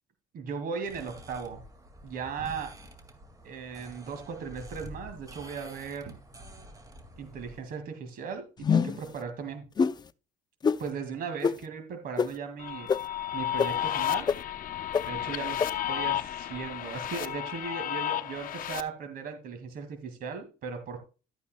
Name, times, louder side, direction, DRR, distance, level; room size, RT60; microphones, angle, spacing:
voice 1, 0.3-1.6 2.0-2.7 3.4-6.1 7.2-9.6 10.8-12.9 13.3-14.3 15.1-15.6 15.9-21.0, right 6 dB, 60° right, 6 dB, 2.1 m, -37 dB
sound 1, 0.8-7.6, equal, 20° right, 2.1 m, -48 dB
sound 2, 8.6-9.1 9.8-9.9 10.6-10.8 11.4-11.5 12.2-12.3 12.9-13.0 13.6-13.7 14.3-14.4 14.9-15.0 15.6-15.7, left 6 dB, 25° left, 0.5 m, -24 dB
sound 3, 12.6-18.8, left 12 dB, 55° left, 0.8 m, -32 dB
12.5 x 9.1 x 2.2 m, 0.33 s
cardioid pair, 110°, 17 cm